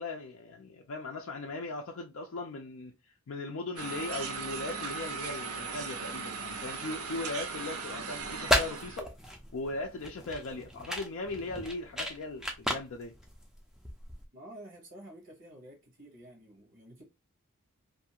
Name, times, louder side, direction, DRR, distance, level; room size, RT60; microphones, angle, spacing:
voice 1, 0.0-9.1 9.5-13.1, left 2 dB, 60° left, 0.4 m, -39 dB
sound 1, 3.8-9.0, right 4 dB, 85° right, 0.6 m, -38 dB
sound 2, 8.2-14.2, equal, ahead, 0.4 m, -34 dB
voice 2, 14.3-17.0, right 1 dB, 60° right, 1.0 m, -50 dB
2.6 x 2.4 x 2.8 m
head